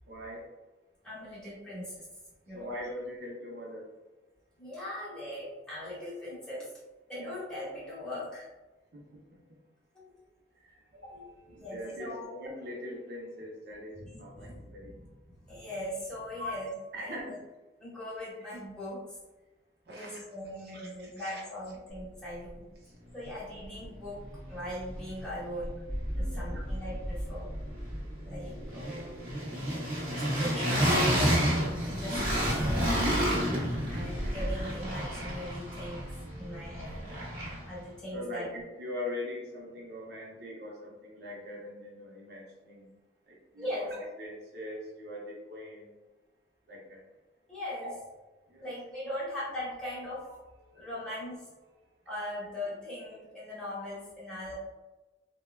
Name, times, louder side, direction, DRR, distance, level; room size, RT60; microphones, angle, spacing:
voice 1, 0.1-0.5 2.5-3.9 8.9-9.6 10.5-15.0 16.4-16.5 16.9-17.4 19.9-20.2 20.6-21.4 22.8-23.0 26.1-26.6 36.3-37.4 38.1-42.9 43.3-45.9 46.7-47.0 47.8-47.9 48.5-48.7 50.6-50.9 51.7-51.8, left 1 dB, 60° right, -2 dB, 0.6 m, -42 dB
voice 2, 1.0-2.1 2.4-2.7 4.6-6.7 7.1-8.4 9.9-10.1 11.1-11.2 11.6-12.3 14.0-16.7 17.0-17.4 17.8-19.0 19.9-22.6 23.1-24.2 24.5-25.8 26.1-27.5 28.2-29.2 30.4-36.1 36.4-37.0 37.7-38.5 43.6-43.9 47.5-47.9 48.6-50.3 50.7-51.4 52.1-54.5, left 1 dB, 5° left, -9 dB, 1.0 m, -40 dB
sound 1, 23.8-23.9 24.2-25.3 25.6-37.8, equal, 25° right, 0.9 m, -31 dB
3.2 x 2.1 x 2.2 m, 1.1 s
head